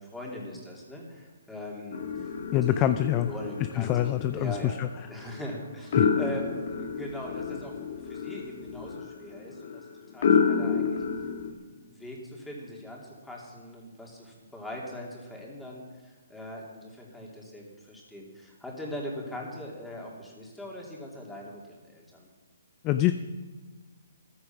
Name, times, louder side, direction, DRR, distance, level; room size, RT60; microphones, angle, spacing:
voice 1, 0.0-2.3 2.6-2.9 3.2-4.8 5.1-9.9 10.1-11.0 11.4-22.3, left 1 dB, 5° left, -2 dB, 3.0 m, -41 dB
sound 1, 1.9-11.5, left 6 dB, 55° left, 1.8 m, -30 dB
voice 2, 2.5-3.3 3.7-4.9 6.0-6.1 22.8-23.1, left 12 dB, 25° left, 10 dB, 0.5 m, -25 dB
14.5 x 11.0 x 6.0 m, 1.4 s
hypercardioid pair, 155°, 0 cm